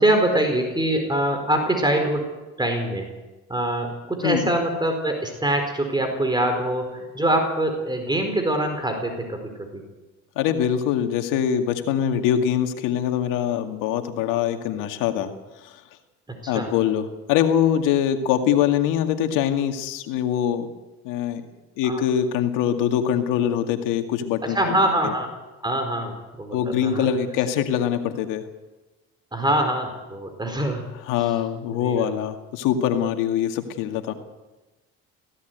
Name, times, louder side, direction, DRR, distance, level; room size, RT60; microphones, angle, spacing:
voice 1, 0.0-2.3 2.6-3.1 3.5-9.8 16.4-16.7 21.8-22.0 24.4-25.3 25.6-27.1 29.3-30.9 31.2-31.3 31.7-32.0, right 1 dB, 15° right, 5 dB, 4.6 m, -24 dB
voice 2, 10.4-15.3 15.6-15.8 16.5-20.7 21.0-21.4 21.8-24.8 25.0-25.1 26.5-28.4 31.1-34.1, left 9 dB, 80° left, 6 dB, 2.2 m, -23 dB
18.0 x 16.5 x 9.4 m, 1.1 s
supercardioid pair, 85°, 31 cm